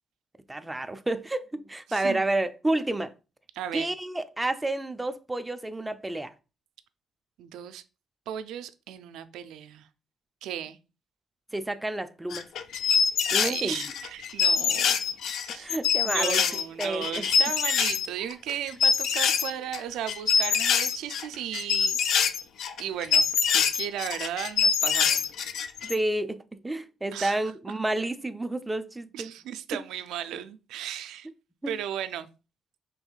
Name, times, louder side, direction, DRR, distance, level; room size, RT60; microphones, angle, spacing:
voice 1, 0.5-3.1 3.7-6.3 11.5-12.5 13.3-13.8 15.6-16.4 16.8-17.3 20.5-20.6 25.8-29.3 31.6-31.7, right 2 dB, 15° right, 0.4 m, -30 dB
voice 2, 1.9-2.2 3.5-3.9 7.4-7.8 8.3-9.9 10.4-10.8 13.4-15.0 15.4-15.7 16.0-22.0 22.8-25.3 27.1-27.4 29.1-31.3 31.7-32.3, right 10 dB, 85° right, 0.4 m, -35 dB
sound 1, 12.3-18.1 18.3-19.8 20.1-25.9, left 6 dB, 75° left, 0.4 m, -25 dB
5.4 x 3.4 x 2.4 m
cardioid pair, 90°, 0 cm